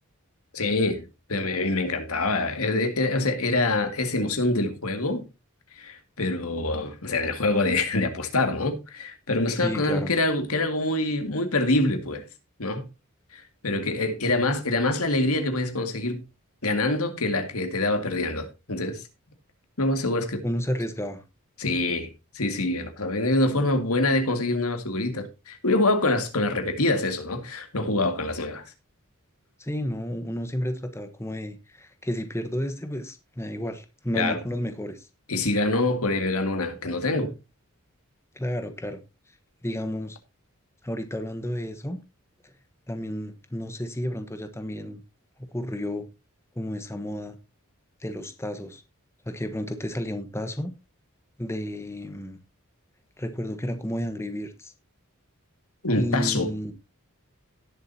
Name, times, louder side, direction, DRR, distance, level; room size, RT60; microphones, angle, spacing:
voice 1, 0.5-5.2 5.8-12.2 12.6-12.9 13.3-16.2 16.6-19.0 19.8-20.4 21.6-22.1 22.3-28.6 34.1-34.4 35.3-37.3 55.8-56.5, left 2 dB, 85° left, 2.2 m, -25 dB
voice 2, 9.6-10.1 20.4-21.2 29.6-35.1 38.3-39.0 39.6-40.2 40.8-42.0 42.4-42.5 42.9-45.0 45.5-46.1 46.5-47.4 48.0-48.8 49.3-50.7 51.4-52.4 53.2-54.7 56.0-56.7, equal, 10° left, 1.1 m, -31 dB
18.0 x 7.6 x 2.8 m
head